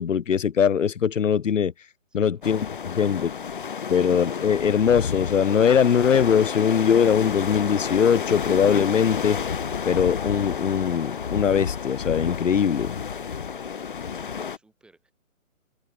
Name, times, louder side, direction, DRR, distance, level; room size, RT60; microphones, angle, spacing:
voice 1, 0.0-1.7 2.1-2.7 3.0-3.3 3.9-9.4 9.8-12.9, left 7 dB, 65° left, 1.3 m, -21 dB
voice 2, 2.1-3.4 14.1-15.1, right 2 dB, ahead, 4.1 m, -59 dB
sound 1, 2.4-14.6, left 6 dB, 40° left, 0.6 m, -31 dB
hypercardioid pair, 165°, 41 cm